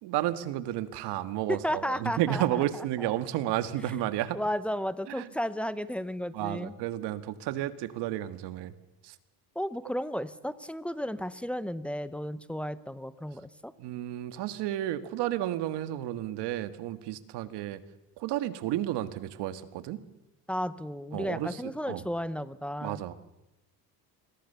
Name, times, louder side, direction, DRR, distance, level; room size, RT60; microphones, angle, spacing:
voice 1, 0.0-4.4 5.1-5.3 6.3-8.7 9.0-9.2 13.8-17.8 18.2-20.0 21.1-22.0 22.8-23.1, right 13 dB, 85° right, 12 dB, 1.8 m, -32 dB
voice 2, 1.5-3.1 4.3-6.7 9.5-13.7 20.5-23.0, equal, 5° left, 15 dB, 0.8 m, -33 dB
28.0 x 22.0 x 6.9 m, 0.95 s
cardioid pair, 150°, 40 cm